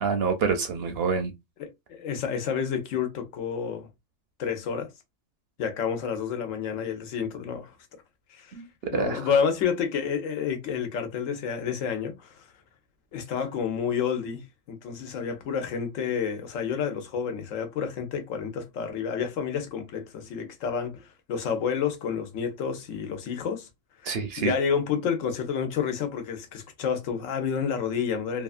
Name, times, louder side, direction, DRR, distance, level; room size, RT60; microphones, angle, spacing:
voice 1, 0.0-1.3 8.5-9.2 24.0-24.5, right 5 dB, 60° right, 0.7 m, -27 dB
voice 2, 1.6-3.9 4.4-4.9 5.6-7.7 8.3-8.5 8.9-12.4 13.1-23.7 24.4-28.4, left 7 dB, 80° left, 1.1 m, -29 dB
2.8 x 2.4 x 2.4 m
omnidirectional pair, 1.3 m